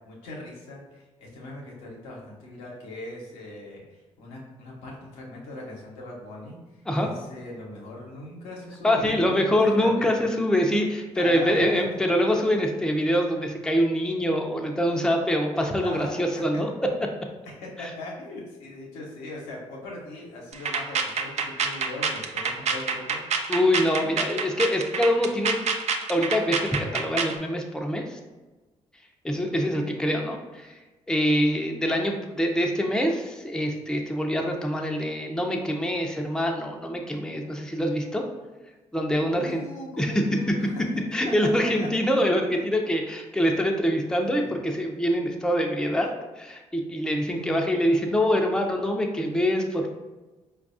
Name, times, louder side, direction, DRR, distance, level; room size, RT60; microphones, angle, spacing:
voice 1, 0.1-6.6 6.9-10.3 11.1-11.8 15.8-16.2 16.5-16.6 17.5-23.2 29.5-29.8 39.3-40.8 41.6-41.9 44.2-44.6 47.3-47.8, left 1 dB, 80° left, -3 dB, 0.8 m, -40 dB
voice 2, 8.8-16.9 23.5-25.6 26.1-28.2 29.2-30.7 31.1-38.2 38.9-39.6 40.0-40.1 41.1-46.1 46.4-49.9, equal, 5° left, 2 dB, 0.5 m, -24 dB
sound 1, 20.5-27.4, right 5 dB, 50° right, 0.4 m, -27 dB
4.5 x 2.3 x 2.5 m, 1.2 s
hypercardioid pair, 45°, 14 cm